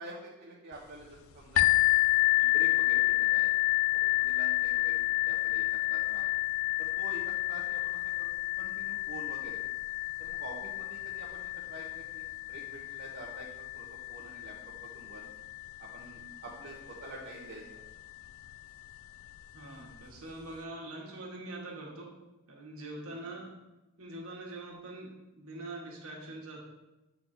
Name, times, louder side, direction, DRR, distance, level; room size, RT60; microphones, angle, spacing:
voice 1, 0.0-1.6 2.3-3.6 3.9-6.3 6.8-8.3 8.6-9.6 10.2-14.5 14.8-15.3 15.8-17.8 23.0-23.2, right 2 dB, 50° right, -6 dB, 1.0 m, -47 dB
sound 1, 1.6-17.1 17.9-18.0 18.5-18.6, left 20 dB, 65° left, 0.4 m, -30 dB
voice 2, 19.5-22.1 22.5-23.5 24.0-25.1 25.4-26.6, right 2 dB, 75° right, -1 dB, 1.6 m, -43 dB
7.9 x 4.3 x 4.3 m, 1.1 s
head